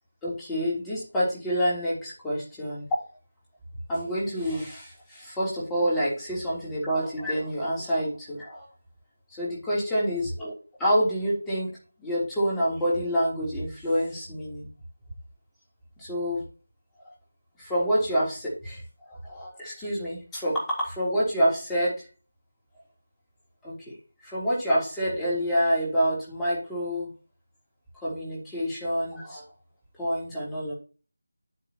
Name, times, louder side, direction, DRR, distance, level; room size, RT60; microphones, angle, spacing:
voice 1, 0.2-3.0 3.9-8.7 9.4-10.5 10.8-11.7 12.0-14.7 16.0-16.4 17.6-18.8 19.1-22.0 23.6-23.9 24.2-27.1 28.0-29.4 30.0-30.7, equal, 5° left, -7 dB, 3.2 m, -27 dB
9.2 x 8.9 x 2.9 m, 0.36 s
figure-of-eight pair, 165°, 0 cm